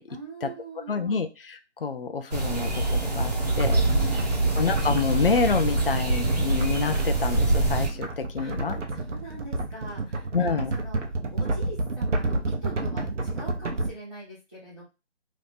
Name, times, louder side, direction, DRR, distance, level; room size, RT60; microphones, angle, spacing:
voice 1, 0.1-1.2 3.8-4.6 8.4-11.0 11.3-14.8, right 2 dB, 5° right, -16 dB, 1.2 m, -42 dB
voice 2, 0.9-3.8 4.6-8.8 10.3-10.7, left 5 dB, 50° left, 8 dB, 0.5 m, -28 dB
sound 1, 2.3-7.9, right 2 dB, 35° right, 1.0 m, -25 dB
sound 2, 3.6-13.9, right 2 dB, 90° right, 0.9 m, -31 dB
3.1 x 2.7 x 3.4 m, 0.28 s
figure-of-eight pair, 175°, 35 cm